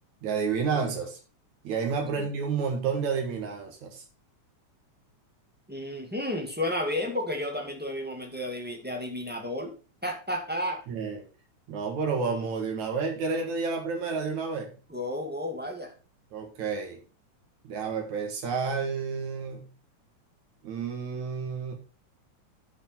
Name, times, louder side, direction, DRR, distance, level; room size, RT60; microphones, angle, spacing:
voice 1, 0.2-1.2 1.6-4.0 10.9-11.2 11.7-14.7 16.3-17.0 17.6-19.7 20.6-21.7, right 5 dB, 70° right, 3 dB, 3.0 m, -30 dB
voice 2, 5.7-9.7 10.0-10.8 14.9-15.9, left 1 dB, 5° right, 2 dB, 1.0 m, -32 dB
10.0 x 5.2 x 5.7 m, 0.35 s
omnidirectional pair, 3.5 m